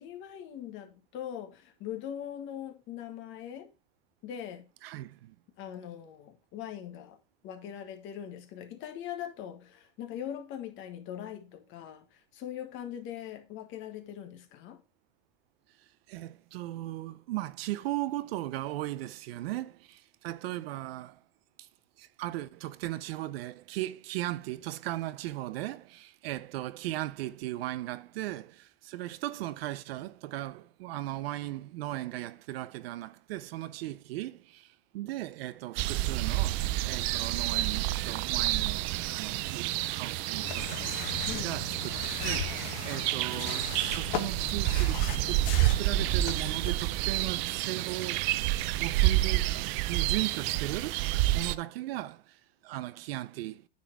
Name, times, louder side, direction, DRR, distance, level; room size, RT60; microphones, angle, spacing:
voice 1, 0.0-3.7 4.2-4.6 5.6-7.2 7.4-14.8 41.3-41.7, left 10 dB, 45° left, 1.4 m, -41 dB
voice 2, 4.8-5.4 16.1-21.2 21.6-21.7 22.0-48.5 48.8-53.7, right 16 dB, 80° right, 0.7 m, -37 dB
sound 1, 35.8-51.5, right 16 dB, 45° right, 0.4 m, -29 dB
sound 2, 40.4-46.7, left 9 dB, 75° left, 1.4 m, -38 dB
9.5 x 4.3 x 4.5 m
supercardioid pair, 145°, 29 cm